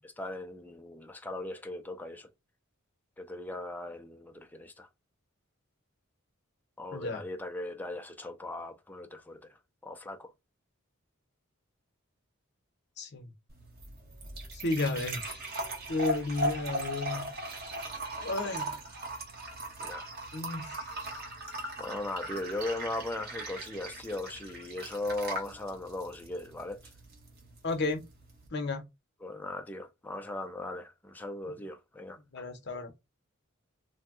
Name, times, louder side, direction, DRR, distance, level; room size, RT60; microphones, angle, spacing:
voice 1, 0.0-2.3 3.2-4.9 6.8-9.4 9.8-10.3 19.8-20.0 21.1-21.2 21.8-26.8 29.2-32.5, left 2 dB, 10° left, 0.3 m, -38 dB
voice 2, 6.9-7.3 13.0-13.3 14.5-15.4 15.9-17.3 18.2-18.8 20.3-20.9 27.6-28.0 28.5-28.9 31.5-31.6 32.3-32.9, left 3 dB, 50° left, 0.7 m, -33 dB
sound 1, 13.5-28.5, right 1 dB, 45° right, 1.0 m, -39 dB
2.6 x 2.2 x 3.5 m
head